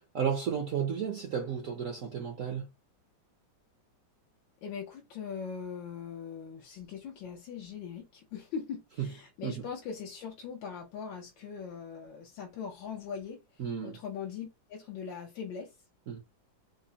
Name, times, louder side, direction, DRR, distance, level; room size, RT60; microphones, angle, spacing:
voice 1, 0.1-2.7 9.0-9.1 9.4-9.6 13.6-14.0 16.1-16.2, right 7 dB, 60° right, 0.9 m, -33 dB
voice 2, 4.6-15.7, left 6 dB, 80° left, 1.5 m, -41 dB
5.3 x 2.1 x 2.7 m
omnidirectional pair, 2.0 m